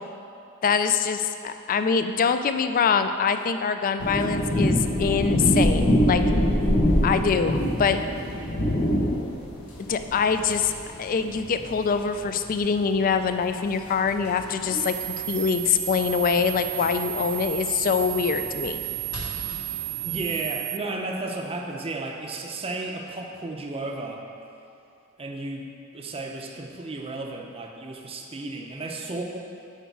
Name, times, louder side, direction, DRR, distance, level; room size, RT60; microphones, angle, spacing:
voice 1, 0.6-6.2 7.0-8.0 9.9-10.7 11.0-18.8, left 6 dB, 40° left, 9 dB, 0.3 m, -24 dB
sound 1, 4.0-20.4, equal, 80° left, 1.2 m, -26 dB
sound 2, 14.8-20.8, right 18 dB, 85° right, 0.3 m, -33 dB
voice 2, 20.0-24.2 25.2-25.7 25.9-29.4, right 2 dB, 25° right, 1 dB, 0.6 m, -33 dB
8.1 x 4.7 x 4.6 m, 2.6 s
head